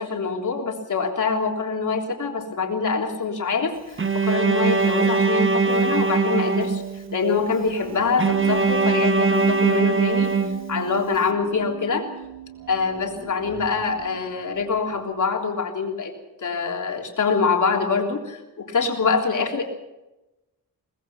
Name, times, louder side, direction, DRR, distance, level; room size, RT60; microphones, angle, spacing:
voice 1, 0.0-10.3 10.7-12.1 12.7-16.1 16.4-19.6, left 5 dB, 60° left, 2 dB, 3.5 m, -25 dB
Bowed string instrument, 4.0-7.2 8.2-11.1, right 4 dB, 35° right, 1.1 m, -21 dB
sound 1, 7.3-15.0, right 7 dB, 70° right, 2.8 m, -39 dB
23.0 x 19.5 x 5.9 m, 1.0 s
wide cardioid pair, 170°, 35 cm